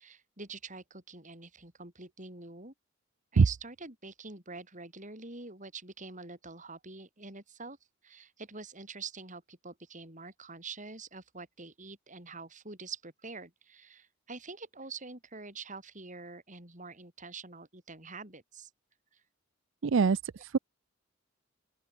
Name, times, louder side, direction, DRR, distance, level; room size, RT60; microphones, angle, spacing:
voice 1, 0.0-2.7 3.3-7.8 8.0-18.7 19.1-19.2, right 4 dB, 35° right, 7.8 m, -46 dB
voice 2, 19.8-20.6, right 5 dB, 60° right, 0.5 m, -24 dB
open air
head